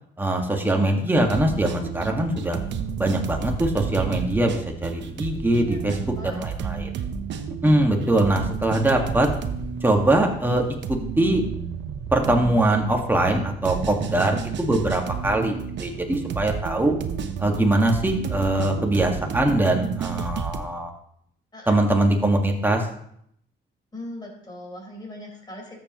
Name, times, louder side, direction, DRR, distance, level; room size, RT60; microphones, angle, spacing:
voice 1, 0.2-2.6 3.0-6.9 7.6-9.3 9.8-10.6 10.9-11.4 12.1-16.9 17.4-20.9 21.7-22.9, right 1 dB, 10° right, 2 dB, 1.8 m, -22 dB
sound 1, 1.1-20.6, right 7 dB, 65° right, 0.9 m, -31 dB
voice 2, 5.6-6.5 21.5-21.7 23.9-25.8, left 1 dB, 20° left, -1 dB, 4.6 m, -40 dB
13.0 x 7.5 x 3.0 m, 0.69 s
cardioid pair, 90°, 20 cm